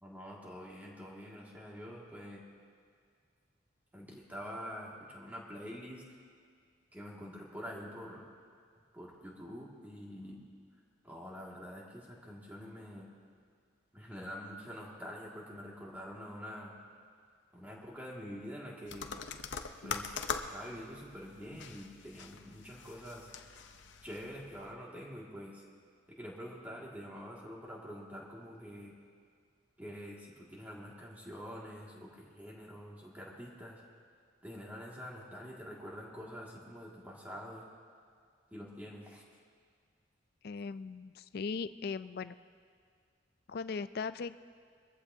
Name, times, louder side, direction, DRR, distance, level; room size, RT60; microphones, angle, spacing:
voice 1, 0.0-2.4 3.9-6.0 6.9-8.3 8.9-10.4 11.0-13.1 13.9-16.7 17.5-19.1 19.8-20.2 20.5-23.3 24.0-25.6 26.1-28.9 29.8-33.8 34.4-37.6 38.5-39.2, equal, 10° right, -4 dB, 2.1 m, -46 dB
sound 1, 18.9-24.7, left 5 dB, 80° left, 0.7 m, -43 dB
voice 2, 40.4-42.4 43.5-44.4, left 5 dB, 55° left, 14 dB, 0.4 m, -38 dB
22.5 x 15.0 x 2.8 m, 2.2 s
head